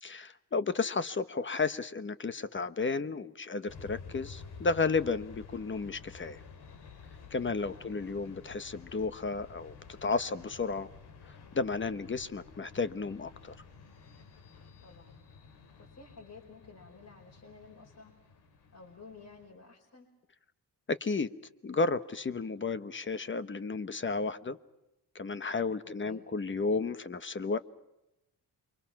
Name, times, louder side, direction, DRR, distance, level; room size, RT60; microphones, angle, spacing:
voice 1, 0.0-6.4 7.3-9.7 10.0-10.9 11.5-13.6 20.9-21.3 21.6-24.6 25.1-27.6, left 4 dB, 30° left, 12 dB, 1.2 m, -32 dB
sound 1, 3.7-19.5, left 5 dB, 85° left, 3.2 m, -51 dB
voice 2, 7.7-8.1 14.8-15.1 15.8-18.1 18.7-20.1 25.8-26.2, left 4 dB, 45° left, -1 dB, 5.0 m, -52 dB
29.0 x 24.5 x 5.9 m, 0.91 s
cardioid pair, 125°, 38 cm